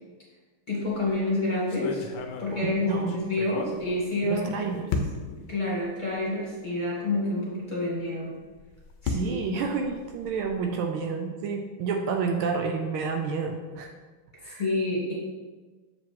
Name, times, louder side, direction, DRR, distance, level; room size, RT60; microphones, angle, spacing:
voice 1, 0.7-2.1 2.4-4.7 5.3-8.3 9.0-9.4 14.4-15.1, left 2 dB, 20° left, -7 dB, 2.1 m, -28 dB
sound 1, 0.8-1.1 1.7-4.4 4.9-5.4 6.2-6.3 6.6-6.7 8.3-10.7, left 4 dB, 65° left, 1.1 m, -35 dB
voice 2, 2.5-3.2 4.3-4.9 9.0-13.9 14.4-14.6, right 5 dB, 75° right, 3 dB, 1.4 m, -29 dB
7.5 x 4.9 x 3.7 m, 1.3 s
omnidirectional pair, 2.4 m